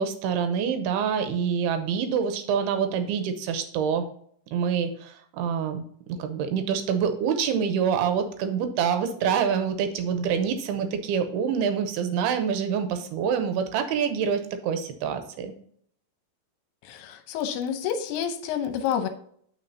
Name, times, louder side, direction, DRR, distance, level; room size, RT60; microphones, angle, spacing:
voice 1, 0.0-4.1 4.5-5.8 6.1-15.5, right 7 dB, 80° right, 8 dB, 2.7 m, -26 dB
voice 2, 16.8-19.1, left 8 dB, 80° left, 8 dB, 2.7 m, -29 dB
8.9 x 5.9 x 2.7 m, 0.63 s
omnidirectional pair, 4.7 m